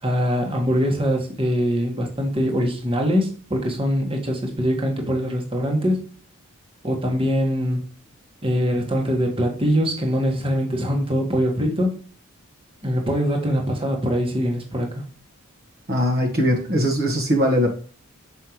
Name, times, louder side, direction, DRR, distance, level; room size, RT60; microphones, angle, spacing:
voice 1, 0.0-6.0 6.8-7.9 8.4-11.9 12.8-15.0, equal, 25° right, 1.6 m, -23 dB
voice 2, 15.9-17.7, equal, 45° right, 1.4 m, -20 dB
6.5 x 5.5 x 3.1 m
head